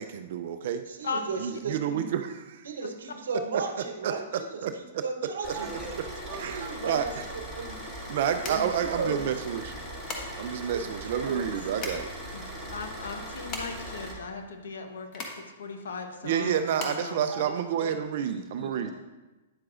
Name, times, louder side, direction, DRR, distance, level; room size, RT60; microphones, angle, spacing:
voice 1, 0.0-0.8 1.4-2.7 4.0-4.1 4.6-5.0 6.4-7.2 8.1-9.7 10.4-12.1 16.2-18.9, right 8 dB, 60° right, 8 dB, 0.4 m, -29 dB
voice 2, 0.9-2.0 2.6-5.7 6.3-7.1 7.6-7.8 8.4-9.3 10.7-11.5, right 4 dB, 75° right, 5 dB, 0.9 m, -35 dB
Car / Idling, 5.4-14.1, equal, 15° left, 2.6 m, -40 dB
voice 3, 5.5-6.8 7.1-7.2 17.3-17.9 18.3-18.9, right 4 dB, 15° right, -2 dB, 1.7 m, -43 dB
sound 1, 8.4-18.2, left 3 dB, 35° left, 1.3 m, -42 dB
voice 4, 12.3-15.3 15.6-17.2, left 4 dB, 75° left, 5 dB, 0.9 m, -37 dB
9.4 x 7.5 x 2.5 m, 1.1 s
hypercardioid pair, 125°, 0 cm